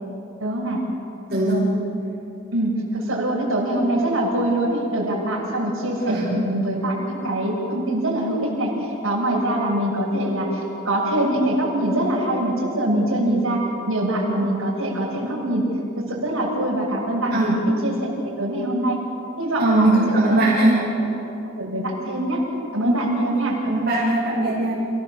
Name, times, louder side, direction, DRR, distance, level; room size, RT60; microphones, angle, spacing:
voice 1, 0.4-0.8 2.5-15.7 16.0-19.0 19.4-20.0 20.3-20.4 20.7-20.9 21.4-22.4 22.7-23.6, right 1 dB, 75° right, -4 dB, 6.8 m, -23 dB
voice 2, 1.3-1.7 6.0-6.3 17.3-17.6 19.6-20.8 22.8-23.0 23.6-24.7, right 2 dB, 45° right, -7 dB, 6.2 m, -20 dB
30.0 x 17.5 x 7.4 m, 2.7 s
head